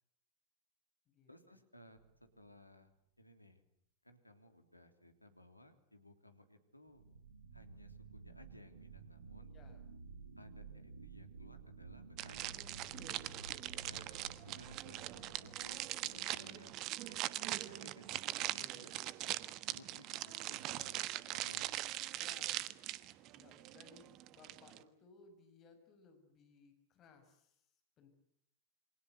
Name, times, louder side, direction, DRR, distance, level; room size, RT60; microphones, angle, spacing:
voice 1, 1.3-2.0 2.4-2.9 3.2-3.6 4.0-7.0 7.5-9.5 10.4-12.5 12.8-12.9 13.8-19.0 19.7-21.0 21.3-22.0, left 1 dB, 85° left, 7 dB, 3.2 m, -60 dB
sound 1, 2.0-2.5 6.9-17.1, right 4 dB, 70° right, 1.8 m, -54 dB
voice 2, 9.5-9.9 12.8-13.8 22.1-28.1, left 4 dB, 30° left, 6 dB, 6.5 m, -63 dB
sound 2, 12.2-24.8, right 15 dB, 40° right, 1.3 m, -41 dB
28.5 x 24.5 x 8.1 m, 0.69 s
figure-of-eight pair, 90°, 0 cm